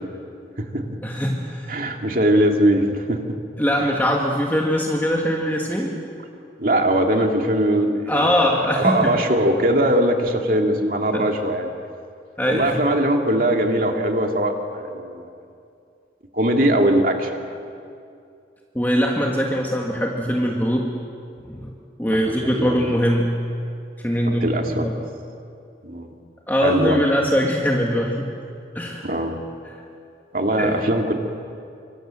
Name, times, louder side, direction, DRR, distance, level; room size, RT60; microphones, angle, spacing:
voice 1, 1.0-1.7 3.6-5.9 8.1-9.2 11.1-11.2 12.4-12.8 18.7-20.9 21.4-21.7 22.0-23.3 24.0-24.9 26.5-28.3 28.8-29.1 30.6-30.8, equal, 10° left, -1 dB, 1.9 m, -22 dB
voice 2, 1.7-3.4 3.8-3.9 6.6-8.5 8.8-11.7 12.5-15.3 16.3-17.5 22.2-22.7 24.3-24.9 25.8-26.1 26.6-27.0 29.0-29.4 30.3-31.1, right 1 dB, 50° right, 3 dB, 2.5 m, -21 dB
26.5 x 25.5 x 7.7 m, 2.5 s
head